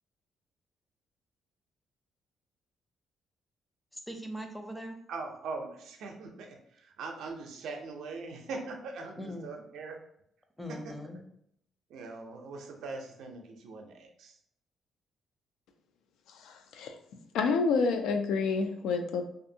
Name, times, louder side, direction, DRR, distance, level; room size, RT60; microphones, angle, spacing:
voice 1, 3.9-5.0 9.2-9.5 10.6-11.2, equal, 5° left, 4 dB, 0.5 m, -40 dB
voice 2, 5.1-10.0 10.7-10.9 11.9-14.4, right 3 dB, 80° right, 3 dB, 0.5 m, -41 dB
voice 3, 16.3-17.0 17.3-19.2, left 4 dB, 85° left, 6 dB, 0.3 m, -29 dB
2.6 x 2.4 x 2.7 m, 0.71 s
cardioid pair, 90°, 0 cm